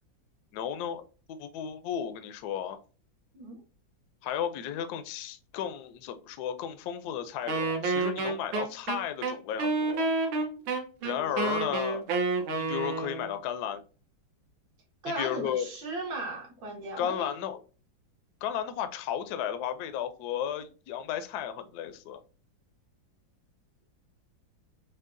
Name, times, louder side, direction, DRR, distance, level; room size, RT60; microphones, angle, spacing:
voice 1, 0.5-1.0 1.3-2.8 4.2-10.1 11.0-12.1 12.5-13.8 15.1-15.7 17.0-17.6 18.4-22.2, left 9 dB, 75° left, 0.9 m, -34 dB
Wind instrument woodwind instrument, 7.5-13.3, right 3 dB, 90° right, 1.6 m, -29 dB
voice 2, 11.1-11.7 15.0-17.3, right 2 dB, 70° right, 2.1 m, -37 dB
6.2 x 2.3 x 2.5 m
omnidirectional pair, 2.1 m